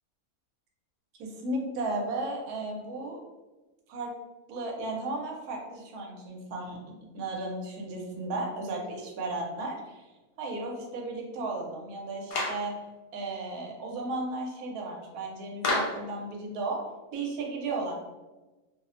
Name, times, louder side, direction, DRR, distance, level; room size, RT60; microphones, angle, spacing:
voice 1, 1.2-3.2 3.9-4.1 4.5-6.8 7.1-10.1 10.4-12.7 13.1-16.8 17.1-18.0, right 2 dB, 80° right, 0 dB, 1.0 m, -34 dB
Clapping, 12.3-12.7 15.6-16.1, left 2 dB, 75° left, 1.1 m, -29 dB
2.6 x 2.0 x 2.4 m, 1.2 s
omnidirectional pair, 1.6 m